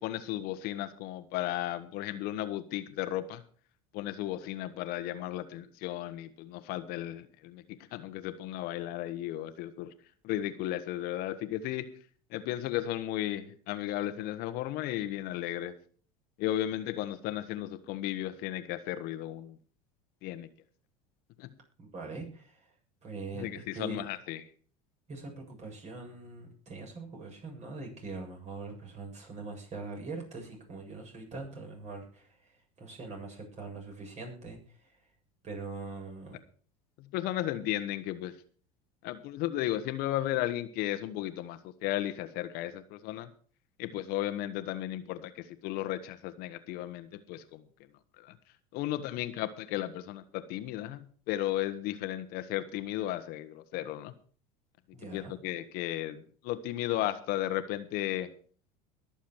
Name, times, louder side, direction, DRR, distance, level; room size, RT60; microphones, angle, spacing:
voice 1, 0.0-3.4 3.9-7.6 7.9-9.9 10.2-11.9 12.3-15.7 16.4-19.6 20.2-20.5 21.4-21.5 23.3-24.4 37.0-38.3 39.0-43.3 43.8-47.6 48.2-48.3 48.7-54.1 55.1-58.3, left 13 dB, 60° left, 10 dB, 1.3 m, -34 dB
voice 2, 21.8-22.7 23.0-24.0 25.1-35.0 35.4-36.4 54.9-55.3, right 3 dB, 40° right, 1 dB, 7.8 m, -42 dB
21.0 x 7.3 x 4.7 m, 0.44 s
hypercardioid pair, 80°, 18 cm